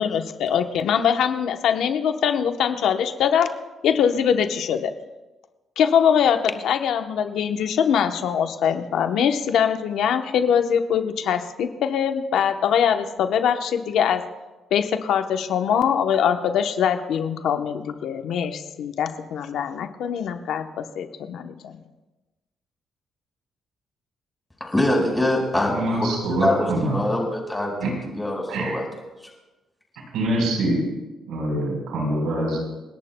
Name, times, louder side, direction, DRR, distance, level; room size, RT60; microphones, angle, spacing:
voice 1, 0.0-3.5 3.8-4.9 5.8-14.2 14.7-21.7, left 8 dB, 75° left, 7 dB, 0.9 m, -22 dB
voice 2, 24.6-28.8 29.2-29.3, left 1 dB, 10° left, 0 dB, 4.8 m, -24 dB
voice 3, 25.6-27.1 27.8-28.0 28.5-28.8 30.1-30.8 31.3-32.6, right 1 dB, 85° right, 0 dB, 4.1 m, -24 dB
30.0 x 11.0 x 2.2 m, 1.1 s
cardioid pair, 90°, 0 cm